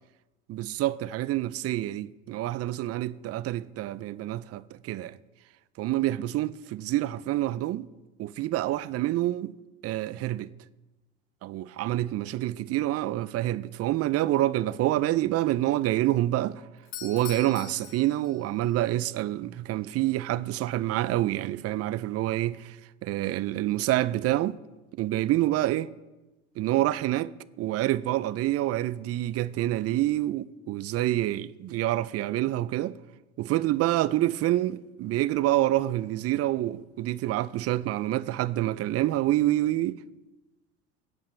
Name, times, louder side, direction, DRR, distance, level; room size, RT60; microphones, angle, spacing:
voice 1, 0.5-5.2 5.8-7.9 8.2-9.5 9.8-10.5 11.4-16.6 17.0-22.8 23.0-24.6 25.0-25.9 26.6-27.3 27.6-32.9 33.4-40.0, right 15 dB, 45° right, 0.5 m, -27 dB
Doorbell, 16.8-18.7, left 9 dB, 80° left, 1.8 m, -43 dB
16.5 x 8.8 x 3.2 m
hypercardioid pair, 80°, 35 cm